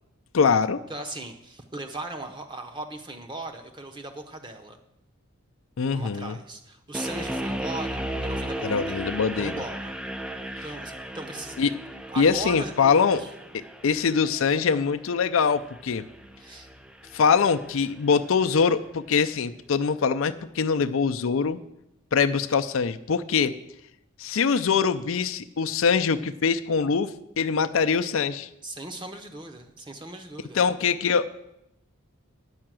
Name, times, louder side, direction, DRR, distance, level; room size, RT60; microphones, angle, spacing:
voice 1, 0.3-0.8 5.8-6.3 8.6-9.6 11.6-11.7 12.2-13.2 13.5-16.0 17.1-21.6 22.1-23.5 24.2-27.1 27.4-28.5 30.5-31.3, left 5 dB, 70° left, 9 dB, 0.5 m, -23 dB
voice 2, 0.9-4.8 5.9-9.9 10.4-11.6 12.1-13.3 16.4-16.7 28.6-30.6, right 2 dB, 20° right, 5 dB, 0.9 m, -38 dB
sound 1, 6.9-18.0, right 1 dB, 5° right, 0.4 m, -36 dB
9.7 x 5.7 x 7.5 m, 0.84 s
head